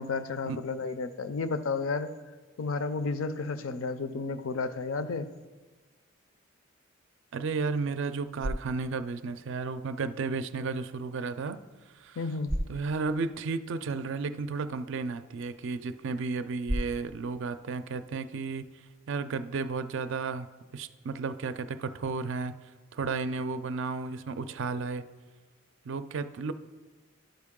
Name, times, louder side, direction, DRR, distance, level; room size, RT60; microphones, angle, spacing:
voice 1, 0.0-2.1 2.6-5.3 12.2-12.5, left 4 dB, 75° left, 12 dB, 0.5 m, -32 dB
voice 2, 7.3-11.6 12.0-12.2 12.7-18.7 19.1-20.5 20.7-22.5 22.9-25.0 25.9-26.5, right 4 dB, 65° right, 11 dB, 0.4 m, -33 dB
sound 1, 8.0-19.1, equal, 5° right, 0.5 m, -41 dB
11.5 x 4.5 x 3.7 m, 1.3 s
head